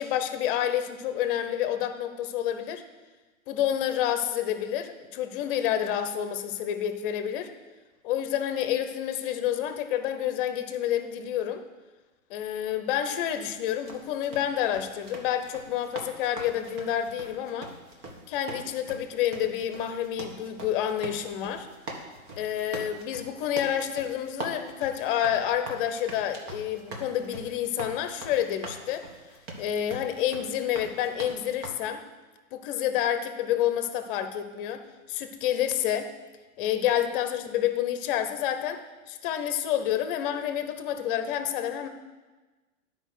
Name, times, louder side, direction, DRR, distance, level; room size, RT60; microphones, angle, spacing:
voice 1, 0.0-2.8 3.5-7.5 8.0-11.6 12.3-17.7 18.3-21.7 22.4-29.0 29.6-32.0 32.5-36.1 36.6-38.8 39.1-41.9, left 10 dB, 40° left, 9 dB, 0.9 m, -29 dB
sound 1, 13.5-31.7, right 2 dB, 30° right, 1.5 m, -42 dB
10.0 x 4.9 x 6.4 m, 1.2 s
hypercardioid pair, 130°, 41 cm